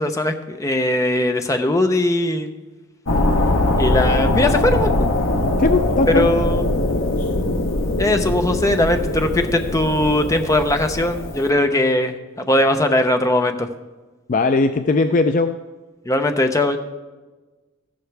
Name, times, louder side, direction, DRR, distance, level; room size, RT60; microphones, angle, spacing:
voice 1, 0.0-2.5 3.8-4.9 6.1-6.9 8.0-13.7 16.1-16.8, left 1 dB, 15° left, 6 dB, 0.7 m, -20 dB
sound 1, 3.1-11.5, left 2 dB, 70° left, 1.0 m, -21 dB
voice 2, 5.6-6.3 7.2-7.3 14.3-15.6, left 3 dB, 40° left, 8 dB, 0.4 m, -19 dB
14.0 x 11.5 x 3.4 m, 1.2 s
head